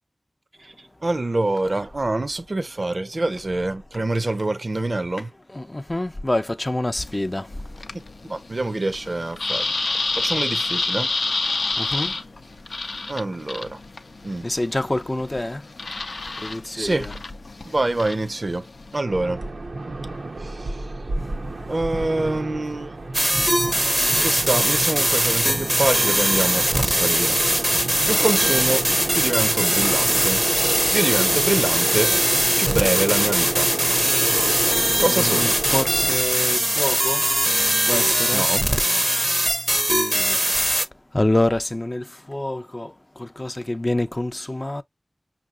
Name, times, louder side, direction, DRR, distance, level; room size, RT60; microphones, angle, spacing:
voice 1, 0.6-5.3 8.3-9.7 10.1-11.1 13.1-13.8 14.2-14.5 16.0-16.2 16.7-17.1 17.6-18.7 18.9-19.4 20.4-20.9 21.7-22.9 24.2-30.5 30.9-35.6 37.6-37.9 38.3-39.5, right 2 dB, 55° right, 0.6 m, -26 dB
voice 2, 5.5-7.5 11.8-12.1 14.4-15.6 16.4-17.1 28.1-28.2 35.0-37.3 37.9-38.5 39.9-40.4 41.1-42.9 43.2-44.8, left 1 dB, 35° left, 0.5 m, -26 dB
sound 1, 7.0-19.0, left 3 dB, 90° left, 0.5 m, -30 dB
sound 2, 19.1-36.2, right 2 dB, 90° right, 0.8 m, -31 dB
sound 3, 23.1-40.9, right 1 dB, 15° right, 0.6 m, -21 dB
5.6 x 2.8 x 2.4 m
wide cardioid pair, 45°, 0 cm